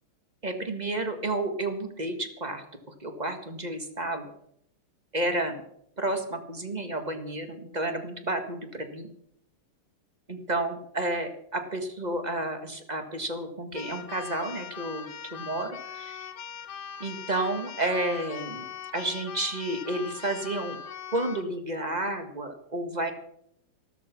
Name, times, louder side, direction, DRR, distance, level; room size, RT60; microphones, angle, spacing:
voice 1, 0.4-2.6 3.0-4.3 5.1-5.6 6.0-9.1 10.3-16.2 17.0-18.7 18.9-20.8 21.1-23.1, right 1 dB, 20° right, 7 dB, 1.4 m, -31 dB
Keyboard (musical), 13.7-21.5, left 7 dB, 65° left, 0.7 m, -41 dB
14.0 x 13.0 x 5.9 m, 0.71 s
omnidirectional pair, 2.4 m